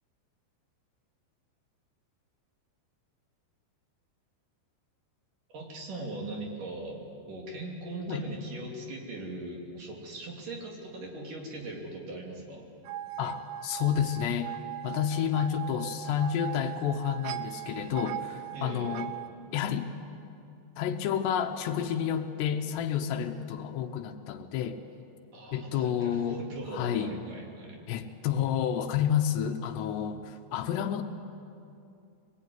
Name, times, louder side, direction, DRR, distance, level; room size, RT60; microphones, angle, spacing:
voice 1, 5.5-7.0 7.3-12.7 18.5-19.0 25.3-27.8, right 2 dB, 50° right, -1 dB, 4.3 m, -40 dB
sound 1, 12.9-19.3, right 13 dB, 80° right, 2.3 m, -39 dB
voice 2, 13.2-14.5 14.8-19.2 19.5-19.9 20.8-24.8 25.5-27.1 27.9-31.0, left 9 dB, 80° left, 7 dB, 3.0 m, -30 dB
23.5 x 20.5 x 9.5 m, 2.6 s
omnidirectional pair, 5.0 m